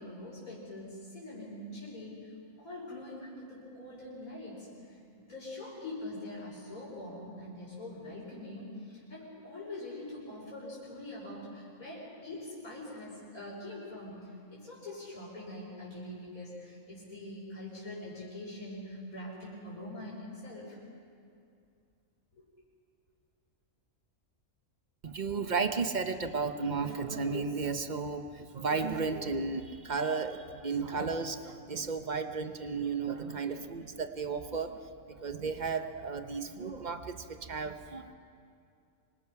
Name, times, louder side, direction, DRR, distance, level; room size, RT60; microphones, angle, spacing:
voice 1, 0.0-2.3 2.6-20.8 22.3-22.4, left 1 dB, 75° left, -6 dB, 5.7 m, -44 dB
voice 2, 25.0-38.1, right 4 dB, 35° right, 8 dB, 1.0 m, -34 dB
26.5 x 24.5 x 5.9 m, 2.5 s
omnidirectional pair, 1.5 m